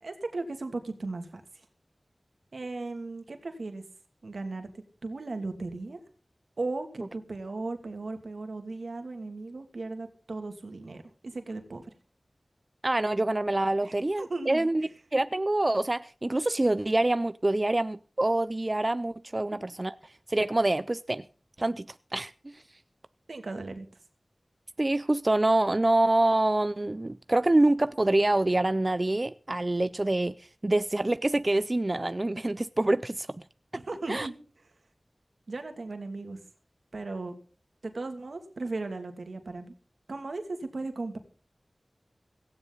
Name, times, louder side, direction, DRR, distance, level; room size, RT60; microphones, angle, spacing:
voice 1, 0.0-1.4 2.5-3.8 4.2-6.0 6.6-11.9 13.8-14.9 23.3-23.9 33.8-34.4 35.5-36.4 36.9-37.3 37.8-39.7 40.1-41.2, right 3 dB, 90° right, 2.6 m, -36 dB
voice 2, 12.8-19.9 20.3-21.2 21.6-21.9 22.1-22.6 24.8-33.3 34.1-34.3, right 2 dB, 40° right, 0.6 m, -26 dB
17.5 x 16.0 x 4.0 m
wide cardioid pair, 40°, 0 cm